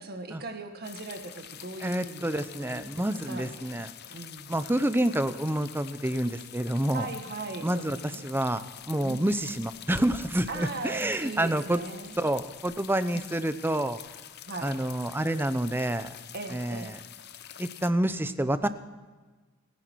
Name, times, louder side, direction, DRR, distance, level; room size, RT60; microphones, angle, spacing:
voice 1, 0.0-2.8 3.1-3.8 4.1-4.6 6.9-8.4 9.0-9.4 10.5-12.3 13.1-13.2 14.5-14.7 16.3-16.9, right 3 dB, 45° right, 5 dB, 1.6 m, -39 dB
sound 1, 0.8-17.9, left 10 dB, 50° left, 0.8 m, -46 dB
voice 2, 1.8-3.9 4.5-7.1 7.6-11.8 12.2-14.0 14.6-16.1 16.5-17.0 17.6-18.7, right 1 dB, 10° right, 12 dB, 0.7 m, -28 dB
30.0 x 10.0 x 4.7 m, 1.4 s
head